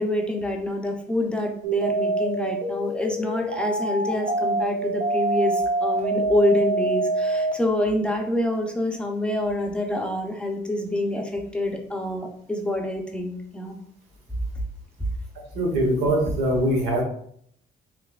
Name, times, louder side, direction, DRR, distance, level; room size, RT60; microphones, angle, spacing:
voice 1, 0.0-13.8, left 1 dB, 5° left, 1 dB, 0.5 m, -26 dB
sound 1, 1.6-7.5, right 2 dB, 65° right, 0.8 m, -25 dB
voice 2, 15.5-17.0, right 1 dB, 85° right, 0 dB, 1.2 m, -22 dB
3.6 x 3.1 x 2.4 m, 0.66 s
cardioid pair, 110°, 17 cm